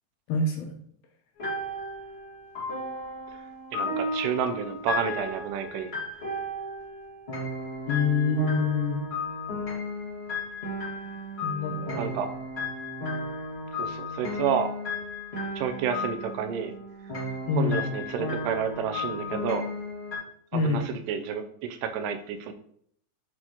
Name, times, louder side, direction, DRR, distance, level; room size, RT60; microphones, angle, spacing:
voice 1, 0.3-0.7 7.9-9.0 11.4-12.2 17.5-17.9 20.5-20.8, left 3 dB, 75° left, 3 dB, 2.4 m, -26 dB
sound 1, 1.4-20.2, left 2 dB, 30° left, 1.1 m, -34 dB
voice 2, 3.7-5.9 11.9-12.3 13.8-14.7 15.6-16.7 17.6-19.7 20.5-22.5, right 7 dB, 85° right, 6 dB, 2.7 m, -30 dB
8.0 x 4.3 x 2.9 m, 0.64 s
omnidirectional pair, 4.7 m